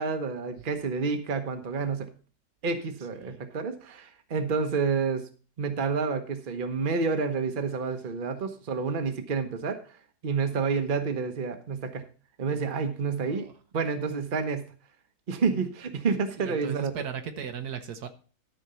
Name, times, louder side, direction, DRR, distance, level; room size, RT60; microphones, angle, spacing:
voice 1, 0.0-2.1 2.6-5.3 5.6-9.8 10.2-12.0 12.4-13.5 13.7-14.7 15.3-16.9, right 5 dB, 35° right, 7 dB, 1.1 m, -29 dB
voice 2, 16.4-18.1, right 7 dB, 75° right, 7 dB, 1.6 m, -37 dB
12.5 x 4.6 x 6.8 m, 0.39 s
omnidirectional pair, 1.7 m